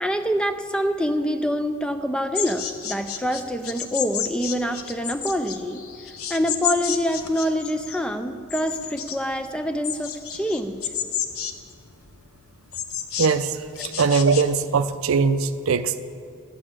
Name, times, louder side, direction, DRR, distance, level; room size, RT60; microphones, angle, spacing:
voice 1, 0.0-5.8 6.3-10.8 13.8-13.9, equal, 5° left, 8 dB, 0.4 m, -26 dB
sound 1, 2.3-14.4, left 9 dB, 80° left, 0.9 m, -31 dB
voice 2, 13.2-13.6 14.0-16.0, right 5 dB, 75° right, 12 dB, 0.5 m, -21 dB
13.0 x 9.0 x 7.4 m, 2.4 s
head